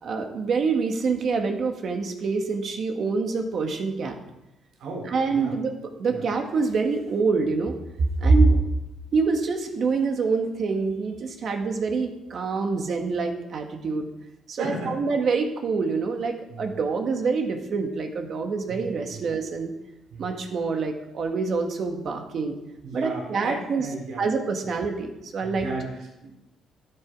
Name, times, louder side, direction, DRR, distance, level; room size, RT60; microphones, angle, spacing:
voice 1, 0.0-4.2 5.0-7.7 8.2-8.5 9.1-14.1 14.5-19.7 20.2-22.6 22.9-23.8 24.2-25.7, right 4 dB, 50° right, 4 dB, 1.7 m, -25 dB
voice 2, 4.8-5.5 6.1-6.2 8.4-8.6 14.6-15.0 16.5-16.7 18.7-19.2 20.1-20.3 22.8-24.3 25.4-26.3, right 3 dB, 75° right, -2 dB, 4.4 m, -35 dB
12.0 x 10.5 x 4.8 m, 0.92 s
cardioid pair, 130°, 0 cm